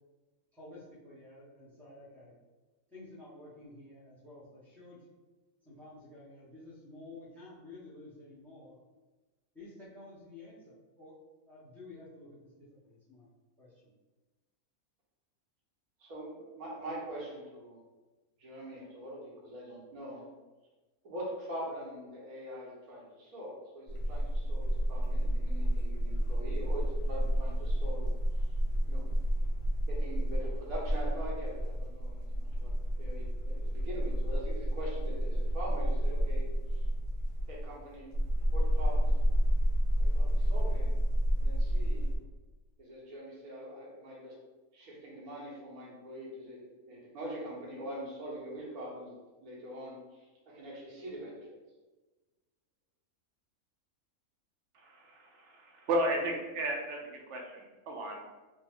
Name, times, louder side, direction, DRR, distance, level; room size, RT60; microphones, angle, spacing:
voice 1, 0.5-2.3 2.9-5.0 5.6-8.8 9.5-11.1 11.5-13.3 13.6-13.9, left 2 dB, ahead, -7 dB, 0.6 m, -51 dB
voice 2, 16.0-17.8 18.4-20.3 21.0-28.1 28.9-29.0 29.9-32.7 33.0-36.8 37.5-38.1 38.5-39.1 40.0-41.0 41.3-42.1 42.8-44.3 44.7-51.4, right 1 dB, 90° right, -5 dB, 1.5 m, -43 dB
sound 1, 23.9-42.2, equal, 65° left, 1.1 m, -30 dB
voice 3, 54.7-58.2, right 1 dB, 65° right, 1 dB, 0.8 m, -34 dB
3.3 x 2.0 x 3.5 m, 1.2 s
omnidirectional pair, 1.5 m